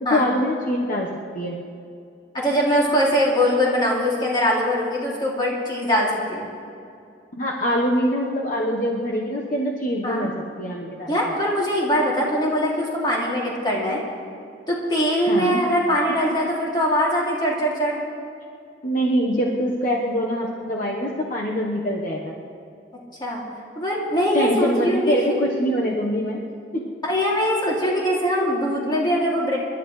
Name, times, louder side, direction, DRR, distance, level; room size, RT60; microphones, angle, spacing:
voice 1, 0.0-1.1 1.3-1.6 7.3-10.3 10.6-11.3 15.3-15.6 16.2-16.3 18.8-22.3 24.3-26.4 27.9-28.0, equal, 45° left, -2 dB, 1.2 m, -24 dB
voice 2, 2.3-6.5 10.0-10.3 11.1-14.0 14.7-18.0 23.2-23.4 23.8-25.4 27.0-29.6, equal, 25° left, -4 dB, 2.7 m, -22 dB
27.5 x 12.0 x 3.2 m, 2.5 s
head